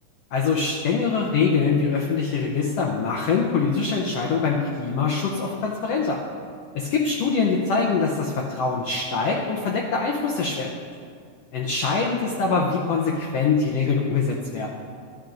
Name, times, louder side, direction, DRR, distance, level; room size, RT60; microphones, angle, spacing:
voice 1, 0.3-6.2 6.7-10.7 11.5-14.7, left 5 dB, 85° left, -1 dB, 1.4 m, -23 dB
13.0 x 10.5 x 2.6 m, 2.2 s
omnidirectional pair, 3.9 m